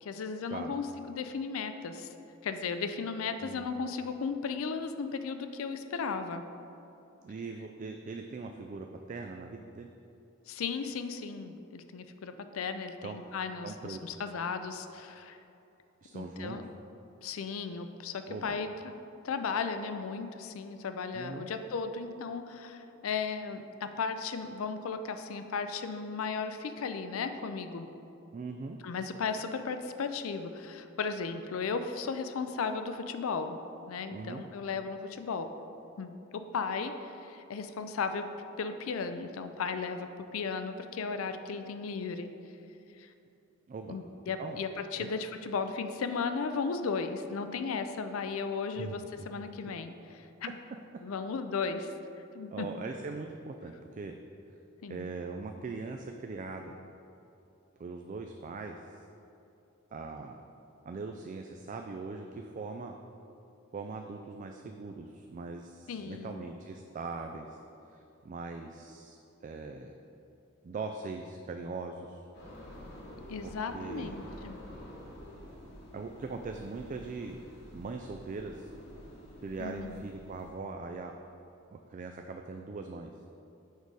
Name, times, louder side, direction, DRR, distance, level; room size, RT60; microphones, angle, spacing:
voice 1, 0.0-2.1 2.4-6.4 10.5-15.4 16.1-16.6 17.2-18.9 19.2-27.9 28.8-33.6 33.9-35.5 36.0-38.3 38.6-42.3 43.0-43.1 43.9-50.6 51.0-51.9 52.3-52.7 54.8-55.0 65.9-66.4 73.3-74.6 79.6-80.0, left 5 dB, 80° left, 9 dB, 0.4 m, -35 dB
voice 2, 7.2-9.9 13.0-13.3 13.6-14.0 16.0-16.6 18.3-18.6 21.1-21.5 28.3-28.8 34.1-34.4 43.7-44.0 44.4-44.6 45.0-45.1 48.7-49.3 52.5-54.2 54.9-56.7 57.8-58.8 59.9-60.4 60.9-63.0 63.7-67.6 67.9-69.9 70.6-72.2 73.4-74.2 75.9-77.4 77.7-78.7 79.4-81.1 81.7-83.1, right 4 dB, 40° right, 4 dB, 0.3 m, -41 dB
sound 1, 72.3-80.5, equal, 55° left, 1.4 m, -49 dB
6.4 x 4.7 x 5.3 m, 2.8 s
head